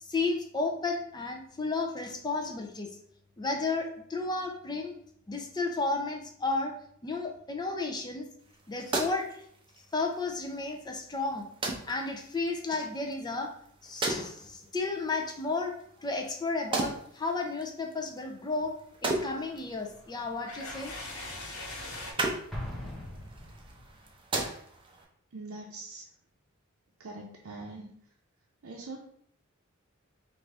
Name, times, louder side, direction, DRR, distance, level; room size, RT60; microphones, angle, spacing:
voice 1, 0.1-2.9 3.4-5.0 5.3-6.7 7.0-8.3 8.7-9.4 9.9-11.5 11.9-13.5 13.8-18.8 19.0-20.9, left 3 dB, 20° left, 2 dB, 0.5 m, -33 dB
sound 1, 8.4-25.0, right 2 dB, 25° right, 0.6 m, -38 dB
sound 2, 19.3-22.1, left 2 dB, 85° left, 1.1 m, -42 dB
Explosion, 22.5-24.1, left 1 dB, ahead, 0.9 m, -40 dB
voice 2, 25.3-26.0 27.0-27.9 28.6-29.0, right 2 dB, 85° right, -1 dB, 0.6 m, -42 dB
4.8 x 2.5 x 3.3 m, 0.64 s
head